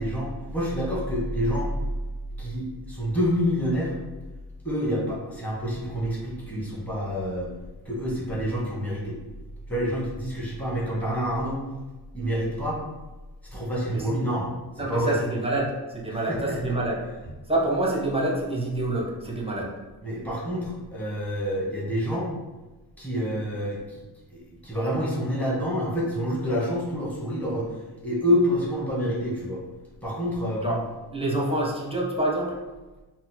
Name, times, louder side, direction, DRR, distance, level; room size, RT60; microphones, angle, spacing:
voice 1, 0.0-1.7 2.4-4.0 4.6-7.5 7.8-9.2 9.7-11.6 12.1-12.8 13.5-15.2 16.3-16.6 20.0-22.3 23.0-24.0 24.3-27.7 28.0-29.6 30.0-30.8, equal, 5° left, -6 dB, 1.2 m, -27 dB
voice 2, 14.8-17.0 17.2-19.7 30.6-30.8 31.1-32.5, right 1 dB, 15° right, -2 dB, 0.7 m, -27 dB
4.2 x 2.1 x 4.2 m, 1.2 s
cardioid pair, 120°, 41 cm